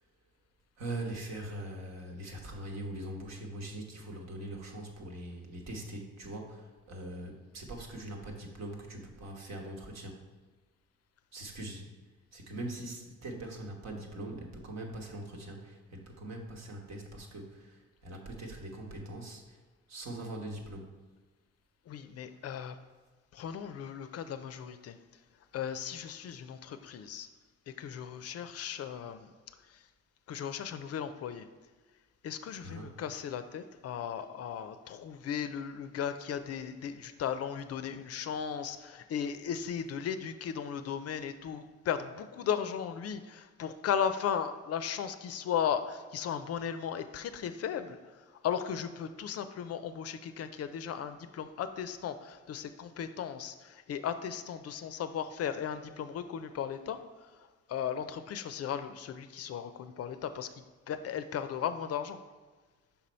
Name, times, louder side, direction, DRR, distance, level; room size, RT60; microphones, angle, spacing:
voice 1, 0.8-10.2 11.3-11.9 12.3-19.6 19.9-20.9 32.6-33.0, right 1 dB, 60° right, 1 dB, 1.2 m, -42 dB
voice 2, 21.9-22.8 23.3-25.0 25.5-27.3 27.8-29.3 30.3-31.5 32.2-48.0 48.4-57.0 57.7-60.5 60.9-62.2, left 8 dB, 55° left, 10 dB, 0.4 m, -36 dB
5.7 x 4.1 x 4.3 m, 1.4 s
cardioid pair, 90°, 30 cm